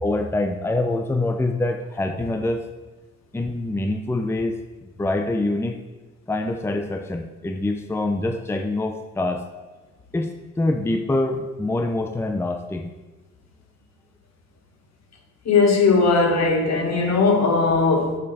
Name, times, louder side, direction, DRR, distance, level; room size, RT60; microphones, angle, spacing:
voice 1, 0.0-2.7 3.3-4.5 5.0-5.8 6.3-9.5 10.1-12.9, left 2 dB, 10° left, 6 dB, 0.6 m, -25 dB
voice 2, 15.4-18.2, left 4 dB, 60° left, 3 dB, 1.5 m, -18 dB
8.5 x 6.7 x 4.2 m, 1.2 s
cardioid pair, 90°, 30 cm